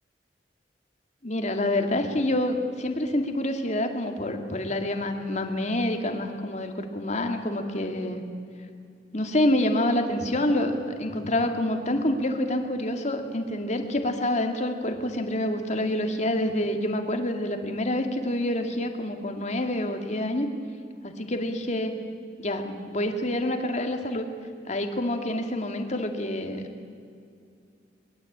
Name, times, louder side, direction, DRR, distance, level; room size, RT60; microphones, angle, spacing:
voice 1, 1.2-8.2 9.1-20.5 21.0-21.9 22.4-24.3 24.7-26.6, left 1 dB, 40° left, 5 dB, 2.4 m, -27 dB
23.0 x 21.0 x 8.8 m, 2.4 s
head